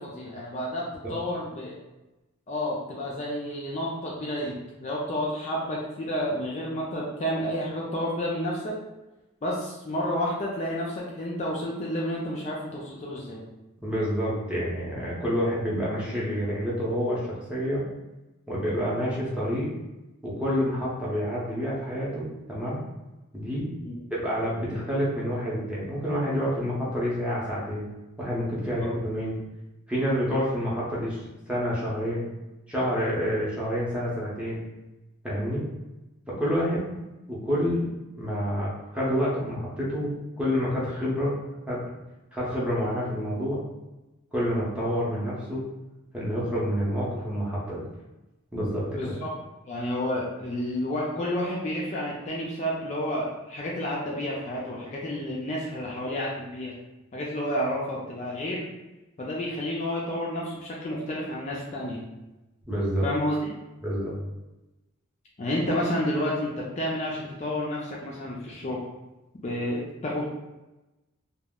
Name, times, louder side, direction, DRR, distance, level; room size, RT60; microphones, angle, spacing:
voice 1, 0.0-1.8 2.5-8.8 9.4-13.4 23.8-24.0 28.6-28.7 49.0-49.3 49.7-56.7 57.1-58.7 59.2-62.0 63.0-63.5 65.4-68.8 69.4-70.3, left 1 dB, 35° left, -4 dB, 0.4 m, -30 dB
voice 2, 13.8-17.9 18.5-19.7 20.2-22.8 23.3-23.7 24.1-27.9 28.2-29.4 29.9-31.2 31.5-32.2 32.7-34.6 35.2-35.6 36.3-36.9 37.3-37.9 38.2-41.3 41.7-41.8 42.3-43.6 44.3-45.6 46.1-47.8 48.5-49.1 62.7-63.1 63.8-64.1, equal, 5° right, -7 dB, 0.7 m, -28 dB
2.3 x 2.0 x 3.5 m, 1.0 s
head